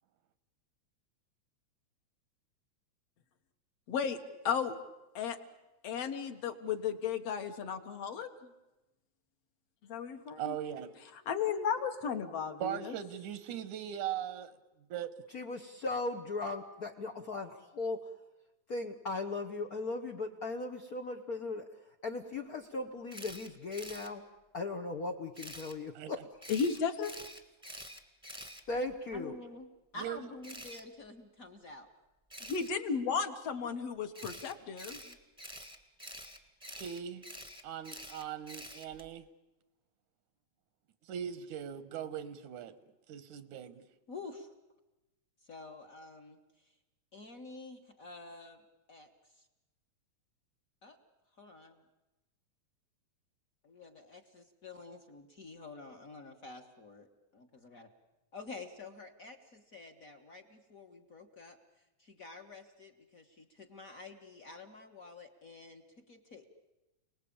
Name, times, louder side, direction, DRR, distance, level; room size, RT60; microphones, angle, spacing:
voice 1, 3.9-4.2 4.4-4.7 5.1-5.4 5.8-8.3 9.9-10.6 11.1-13.0 26.5-27.1 32.4-35.0, left 6 dB, 60° left, 6 dB, 2.3 m, -34 dB
voice 2, 10.4-10.9 12.6-14.5 14.9-15.1 26.0-26.1 30.0-30.2 36.7-37.2 37.6-39.2 41.1-42.7 43.1-43.8, right 10 dB, 90° right, 13 dB, 2.6 m, -39 dB
voice 3, 15.3-18.1 18.7-24.2 24.5-26.3 28.7-29.3, left 3 dB, 90° left, 4 dB, 0.8 m, -38 dB
Camera, 23.1-24.1 25.3-25.7 26.4-29.2 30.4-30.8 32.3-32.7 34.1-39.1, equal, 5° right, 1.0 m, -47 dB
voice 4, 29.1-29.7 29.9-31.9 44.1-44.5 45.4-46.8 47.1-48.6 48.9-49.5 50.8-51.0 51.3-51.8 53.6-57.1 57.3-57.9 58.3-61.6 62.0-66.6, left 3 dB, 40° left, 5 dB, 1.2 m, -49 dB
29.5 x 19.5 x 8.7 m, 1.0 s
omnidirectional pair, 3.3 m